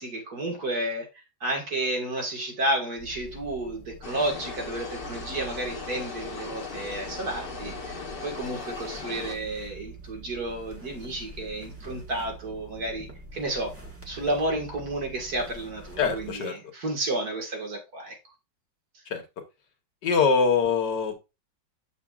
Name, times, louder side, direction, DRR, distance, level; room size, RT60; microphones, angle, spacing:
voice 1, 0.0-13.7 14.1-18.2, right 1 dB, 60° right, 2.3 m, -31 dB
sound 1, 3.0-16.3, right 2 dB, 10° right, 1.2 m, -45 dB
sound 2, 4.0-9.4, left 4 dB, 35° left, 1.2 m, -38 dB
voice 2, 16.0-16.5 19.1-19.2 20.0-21.1, left 5 dB, 70° left, 1.8 m, -23 dB
7.2 x 6.8 x 2.4 m
omnidirectional pair, 1.9 m